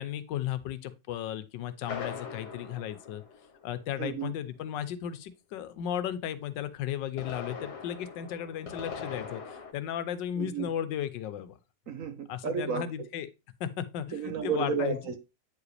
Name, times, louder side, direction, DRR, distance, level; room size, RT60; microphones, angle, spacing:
voice 1, 0.0-3.2 3.6-11.6 12.3-13.3 13.6-15.0, left 10 dB, 90° left, 1.4 m, -35 dB
sound 1, 1.9-4.0 6.9-9.7, left 6 dB, 65° left, 1.6 m, -41 dB
voice 2, 4.0-4.3 10.4-10.7 11.9-12.9 14.1-15.2, right 6 dB, 55° right, 1.1 m, -32 dB
9.0 x 4.8 x 3.2 m
omnidirectional pair, 1.9 m